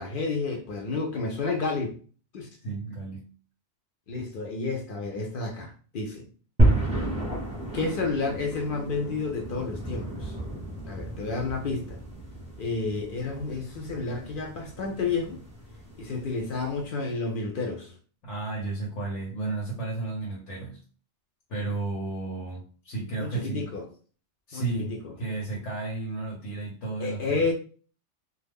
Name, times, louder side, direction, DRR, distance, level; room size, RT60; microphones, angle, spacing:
voice 1, 0.0-1.9 2.3-2.5 4.1-6.3 7.7-10.4 10.9-12.0 12.6-15.4 16.0-18.0 23.2-23.9 24.5-25.1 27.0-27.5, left 4 dB, 55° left, 0.7 m, -30 dB
voice 2, 2.6-3.2 18.2-20.8 21.5-23.7 24.5-27.5, right 3 dB, 80° left, 1.1 m, -33 dB
sound 1, 6.6-16.9, right 1 dB, 5° right, 0.6 m, -31 dB
2.4 x 2.2 x 3.4 m
omnidirectional pair, 1.2 m